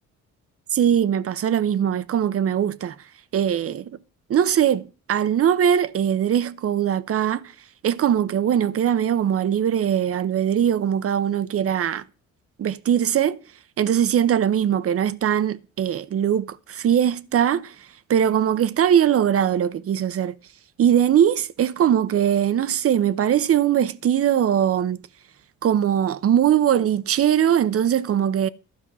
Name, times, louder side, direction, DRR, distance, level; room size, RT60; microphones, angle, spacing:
voice 1, 0.7-3.0 3.3-3.9 4.3-7.5 7.8-12.0 12.6-13.4 13.8-17.7 18.1-20.3 20.8-25.0 25.6-28.5, right 9 dB, 50° right, 0.7 m, -21 dB
12.0 x 5.4 x 6.1 m
cardioid pair, 90°, 30 cm